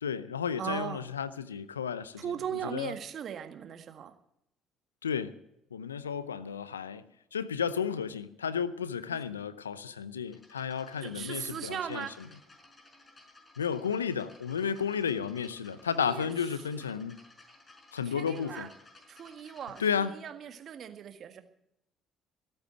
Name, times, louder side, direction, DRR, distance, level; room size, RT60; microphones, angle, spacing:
voice 1, 0.0-2.2 2.6-2.9 5.0-5.4 5.7-12.1 13.6-17.2 17.9-18.7 19.8-20.2, left 7 dB, 90° left, 0.6 m, -33 dB
voice 2, 0.6-1.0 2.2-4.1 11.0-12.1 16.0-16.3 16.7-16.8 18.1-18.7 19.1-21.4, right 8 dB, 55° right, 1.7 m, -38 dB
sound 1, 10.3-19.9, left 2 dB, 30° left, 5.6 m, -57 dB
16.0 x 8.8 x 9.2 m
hypercardioid pair, 50°, 0 cm